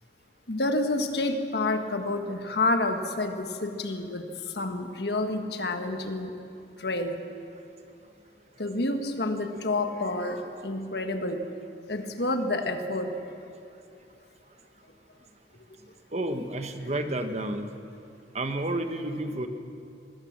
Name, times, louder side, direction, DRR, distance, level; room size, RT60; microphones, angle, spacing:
voice 1, 0.5-4.3 4.6-6.3 6.8-7.2 8.6-11.4 11.9-13.1 17.6-17.7, left 2 dB, 65° left, 6 dB, 1.5 m, -29 dB
voice 2, 16.1-17.7 18.3-19.5, right 1 dB, 35° right, 7 dB, 1.2 m, -30 dB
22.0 x 16.0 x 7.4 m, 2.6 s
head